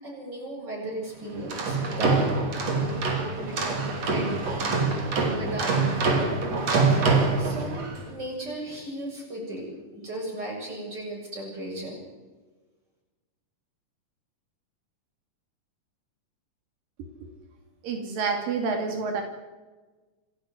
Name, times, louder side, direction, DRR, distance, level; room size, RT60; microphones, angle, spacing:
voice 1, 0.0-2.3 2.8-6.3 7.4-12.0, right 1 dB, 30° right, -1 dB, 8.3 m, -36 dB
sound 1, 1.3-8.0, right 3 dB, 50° right, 4.1 m, -25 dB
voice 2, 17.8-19.2, right 5 dB, 85° right, 4 dB, 4.0 m, -28 dB
27.5 x 11.5 x 9.5 m, 1.3 s
omnidirectional pair, 3.9 m